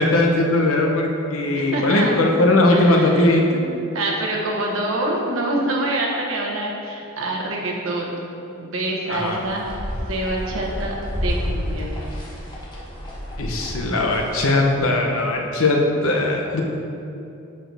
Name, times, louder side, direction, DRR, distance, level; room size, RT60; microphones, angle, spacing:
voice 1, 0.0-3.4 9.1-9.4 13.4-16.6, left 2 dB, 75° left, 1 dB, 0.9 m, -19 dB
voice 2, 1.5-2.2 2.7-3.3 3.9-8.3 8.6-9.6 10.1-11.9, right 1 dB, 70° right, -2 dB, 1.2 m, -26 dB
sound 1, 9.1-14.5, equal, 20° left, 1.3 m, -30 dB
10.5 x 4.4 x 3.4 m, 2.7 s
head